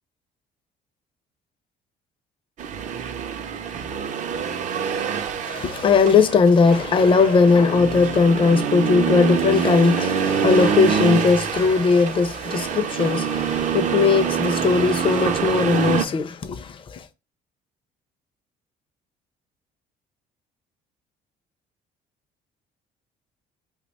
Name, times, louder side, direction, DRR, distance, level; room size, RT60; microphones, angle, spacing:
Accelerating revving vroom, 2.6-16.1, right 7 dB, 45° right, 0.4 m, -25 dB
voice 1, 5.4-17.0, left 4 dB, 30° left, 0.4 m, -19 dB
2.8 x 2.2 x 4.1 m
cardioid pair, 110°, 17 cm